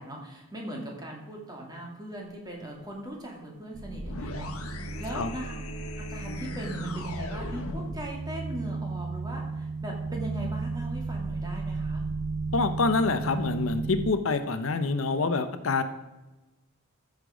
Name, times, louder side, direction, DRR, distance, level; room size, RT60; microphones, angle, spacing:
voice 1, 0.0-5.6 6.1-12.1, right 1 dB, 20° right, -1 dB, 2.3 m, -39 dB
sound 1, 3.7-14.1, right 3 dB, 50° right, 0.5 m, -34 dB
sound 2, 4.0-8.1, left 2 dB, 85° left, 1.3 m, -39 dB
voice 2, 12.5-15.8, left 3 dB, 70° left, 10 dB, 0.7 m, -26 dB
14.0 x 6.7 x 5.0 m, 1.1 s
head